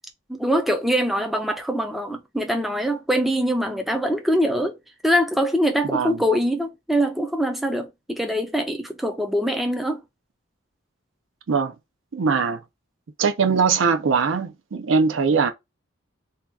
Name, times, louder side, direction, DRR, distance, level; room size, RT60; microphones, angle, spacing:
voice 1, 0.3-4.8 5.0-10.0, equal, ahead, 0.4 m, -23 dB
voice 2, 5.8-6.2 11.5-11.7 12.1-12.6 13.2-15.5, right 5 dB, 70° right, 0.5 m, -21 dB
2.7 x 2.3 x 3.5 m
head